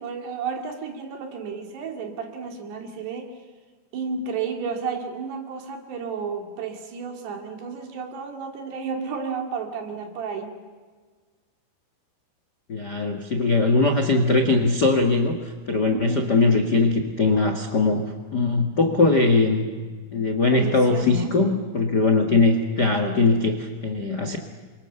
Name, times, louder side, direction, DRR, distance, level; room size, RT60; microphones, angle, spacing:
voice 1, 0.0-3.3 3.9-10.6 15.9-16.3 20.5-21.4, right 5 dB, 75° right, 4 dB, 4.6 m, -32 dB
voice 2, 12.7-19.6 20.1-24.4, left 3 dB, 55° left, 5 dB, 1.1 m, -21 dB
28.0 x 24.5 x 6.9 m, 1.5 s
omnidirectional pair, 4.9 m